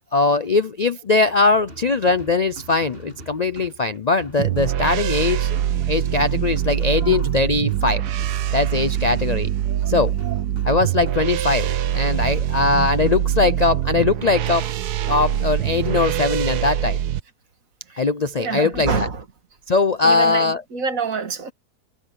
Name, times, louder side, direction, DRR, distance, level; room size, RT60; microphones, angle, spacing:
voice 1, 0.1-5.6 5.9-8.0 8.5-9.5 9.9-10.1 10.6-14.7 15.1-17.0 18.0-19.1 19.7-20.6, left 3 dB, 85° left, 0.3 m, -20 dB
sound 1, 1.2-14.0, right 1 dB, 35° right, 6.8 m, -44 dB
sound 2, 4.4-17.2, right 11 dB, 75° right, 1.3 m, -23 dB
voice 2, 5.8-6.2 6.9-7.3 9.7-10.0 10.2-10.4 12.2-12.4 14.5-14.7 17.9-18.0 18.4-19.2 20.0-21.5, right 5 dB, 55° right, 2.0 m, -28 dB
omnidirectional pair, 1.7 m